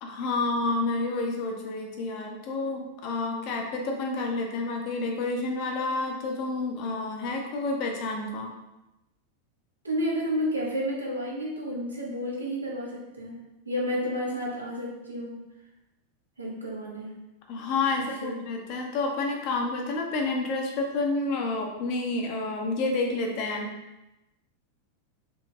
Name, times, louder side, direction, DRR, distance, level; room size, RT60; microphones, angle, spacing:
voice 1, 0.0-8.5 17.5-23.7, left 3 dB, 45° left, 2 dB, 0.5 m, -29 dB
voice 2, 9.8-15.4 16.4-17.2 18.0-18.4, equal, 80° right, -3 dB, 0.7 m, -31 dB
3.0 x 2.8 x 2.3 m, 0.97 s
figure-of-eight pair, 90°, 0 cm